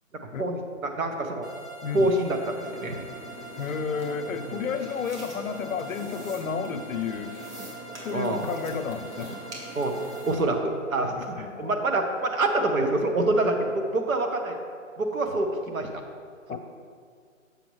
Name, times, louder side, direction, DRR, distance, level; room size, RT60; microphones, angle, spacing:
voice 1, 0.4-1.5 1.9-3.0 4.5-4.6 8.1-8.5 9.7-9.9 10.3-14.6 15.0-15.9 16.5-16.6, right 2 dB, 90° right, 4 dB, 1.1 m, -26 dB
sound 1, 1.4-10.4, right 1 dB, 25° right, 0.9 m, -44 dB
sound 2, 2.6-10.3, right 1 dB, 60° right, 1.8 m, -43 dB
voice 2, 3.6-7.4 8.0-9.3 11.2-11.8 16.5-16.6, left 6 dB, 85° left, 10 dB, 0.6 m, -32 dB
7.1 x 6.9 x 3.1 m, 2.2 s
hypercardioid pair, 180°, 40 cm